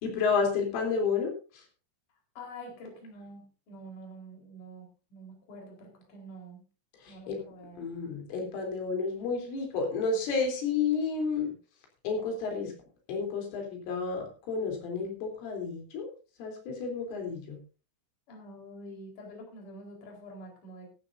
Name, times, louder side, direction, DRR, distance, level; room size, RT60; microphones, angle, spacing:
voice 1, 0.0-1.3 7.0-7.4 7.8-11.5 12.0-12.7 13.1-16.1 16.4-17.6, left 5 dB, 85° left, 2 dB, 6.1 m, -31 dB
voice 2, 2.4-6.6 7.1-7.9 18.3-20.9, equal, 45° left, 1 dB, 5.5 m, -47 dB
15.5 x 15.5 x 2.7 m, 0.34 s
omnidirectional pair, 5.5 m